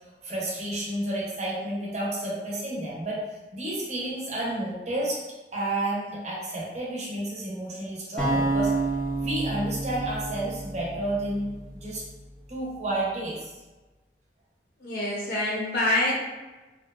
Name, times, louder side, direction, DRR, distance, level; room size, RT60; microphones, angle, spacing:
voice 1, 0.2-3.2 3.5-5.2 5.5-8.7 9.2-12.0 12.5-13.5, right 1 dB, 40° right, -5 dB, 0.6 m, -31 dB
sound 1, 8.2-12.3, right 2 dB, 5° left, 0.5 m, -29 dB
voice 2, 14.8-16.1, left 1 dB, 60° left, -5 dB, 0.5 m, -26 dB
2.7 x 2.1 x 2.2 m, 1.1 s
head